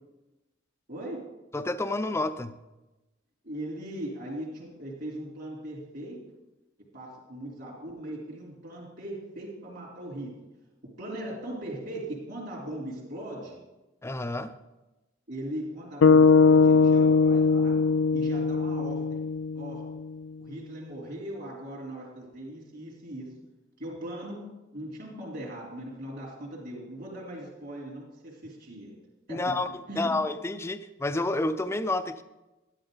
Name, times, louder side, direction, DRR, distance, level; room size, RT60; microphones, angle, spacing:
voice 1, 0.9-1.2 3.4-6.2 6.9-10.3 11.0-13.6 15.3-17.7 18.1-19.2 19.5-19.8 20.4-23.3 23.8-24.4 24.7-29.0 29.3-29.4 29.9-30.1, right 1 dB, 55° right, -4 dB, 3.5 m, -39 dB
voice 2, 1.5-2.6 14.0-14.5 29.3-29.7 30.0-32.2, left 2 dB, 15° left, 11 dB, 0.4 m, -29 dB
sound 1, 16.0-20.3, left 4 dB, 75° left, 0.4 m, -21 dB
11.5 x 11.5 x 3.9 m, 1.0 s
head